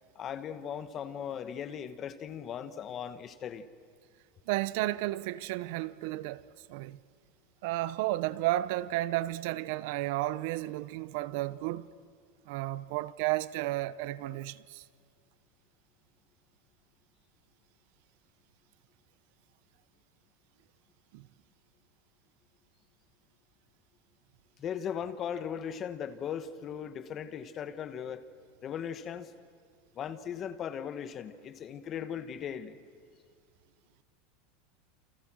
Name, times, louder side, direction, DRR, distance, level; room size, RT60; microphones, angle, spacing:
voice 1, 0.1-3.7 24.6-28.2 28.6-29.3 29.9-32.8, left 8 dB, 25° left, 1.3 m, -38 dB
voice 2, 4.5-7.0 7.6-11.9 12.5-14.9 21.1-21.3, right 16 dB, 60° right, 0.7 m, -33 dB
29.5 x 29.0 x 6.3 m
supercardioid pair, 160°, 0 cm